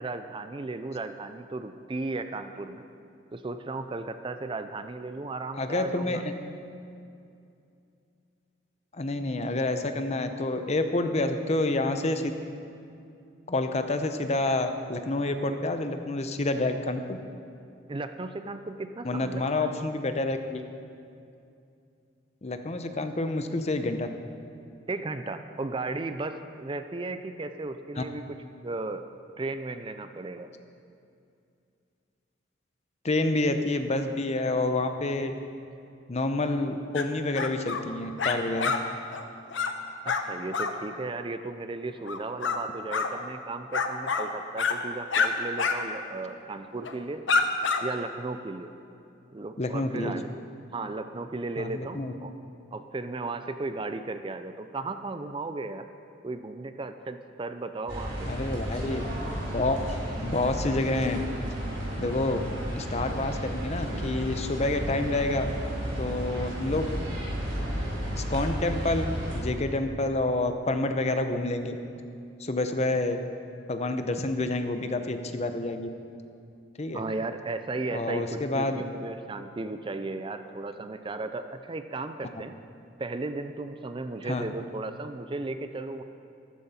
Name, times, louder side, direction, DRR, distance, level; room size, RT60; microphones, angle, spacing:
voice 1, 0.0-2.8 3.3-6.2 17.9-19.7 24.9-28.4 28.6-29.1 29.4-30.5 40.0-47.2 47.8-48.7 49.3-50.3 50.7-52.3 52.7-55.9 56.2-58.3 76.9-82.6 83.0-86.0, right 3 dB, 25° right, 9 dB, 0.5 m, -35 dB
voice 2, 5.5-6.3 8.9-12.3 13.5-17.2 19.0-20.7 22.4-24.1 28.0-28.1 33.0-35.3 36.1-38.7 49.6-50.2 51.6-52.1 58.2-59.0 59.5-59.8 60.2-61.2 62.0-62.4 62.7-65.5 66.0-66.8 68.1-69.1 69.3-71.8 72.4-73.2 73.7-75.9 76.8-77.0 77.9-78.8 84.2-84.5, left 2 dB, 35° left, 7 dB, 0.8 m, -28 dB
sound 1, 36.9-37.0 37.3-37.8 38.2-38.8 39.1-39.2 39.5-39.7 40.1-40.2 40.5-40.7 42.1-42.6 42.9-43.1 43.7-44.3 44.6-44.8 45.1-45.3 45.6-45.8 46.1-46.2 46.8-47.0 47.3-47.8, left 5 dB, 80° left, 0.9 m, -27 dB
sound 2, 57.9-69.4, equal, 75° right, 4.0 m, -33 dB
14.0 x 13.5 x 4.3 m, 2.5 s
head